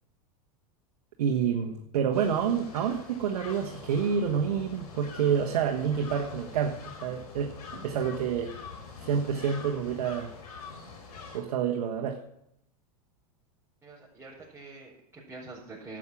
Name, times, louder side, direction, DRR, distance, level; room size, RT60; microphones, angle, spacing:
voice 1, 1.2-7.5 7.8-8.5 9.1-10.3 11.3-12.2, right 7 dB, 75° right, 2 dB, 1.4 m, -28 dB
sound 1, 2.1-11.4, left 5 dB, 85° left, 3.9 m, -45 dB
voice 2, 13.8-16.0, right 3 dB, 10° right, -7 dB, 4.5 m, -45 dB
12.0 x 7.6 x 7.3 m, 0.79 s
hypercardioid pair, 115°, 20 cm